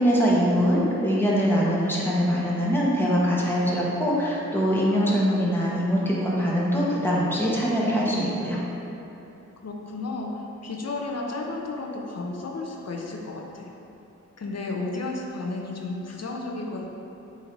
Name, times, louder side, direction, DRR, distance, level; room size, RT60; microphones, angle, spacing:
voice 1, 0.0-8.6, equal, 5° left, -6 dB, 1.2 m, -23 dB
voice 2, 9.6-10.3 10.6-13.7 14.4-16.8, left 3 dB, 55° left, 0 dB, 0.7 m, -32 dB
7.8 x 2.8 x 4.6 m, 2.9 s
wide cardioid pair, 90°, 30 cm